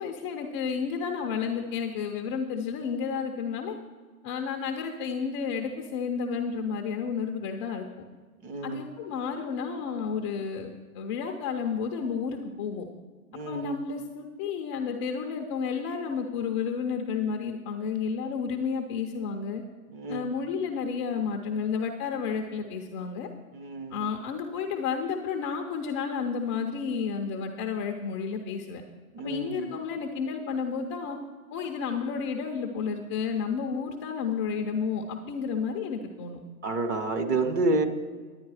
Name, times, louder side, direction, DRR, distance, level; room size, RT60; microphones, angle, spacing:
voice 1, 0.0-3.8 4.2-7.8 8.6-10.7 10.9-12.9 13.5-19.6 20.1-23.3 23.9-28.8 29.2-31.2 31.5-36.4, left 6 dB, 20° left, 3 dB, 0.4 m, -31 dB
voice 2, 8.4-8.9 13.3-13.8 19.9-20.3 23.5-24.1 29.1-29.7 36.6-37.9, right 3 dB, 25° right, 7 dB, 0.7 m, -29 dB
10.5 x 9.3 x 4.7 m, 1.5 s
hypercardioid pair, 135°, 44 cm